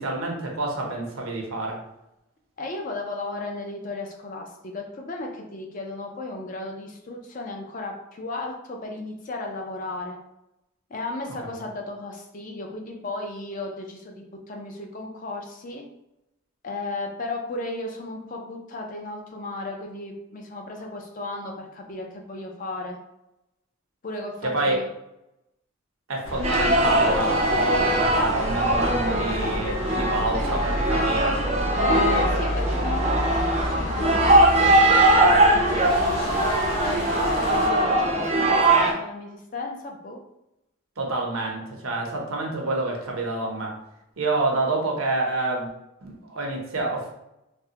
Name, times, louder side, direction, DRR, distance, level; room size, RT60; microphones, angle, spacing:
voice 1, 0.0-1.8 24.4-24.8 26.1-31.4 41.0-43.7 44.2-45.7 46.0-47.1, right 2 dB, 75° right, 0 dB, 0.7 m, -27 dB
voice 2, 2.6-10.2 10.9-15.8 16.6-23.0 24.0-24.9 31.8-40.2, left 2 dB, 40° left, 2 dB, 0.4 m, -35 dB
sound 1, 26.2-37.7, equal, 70° left, 0.8 m, -30 dB
sound 2, 26.4-38.9, right 1 dB, 30° right, 0.4 m, -21 dB
3.3 x 2.0 x 2.8 m, 0.86 s
head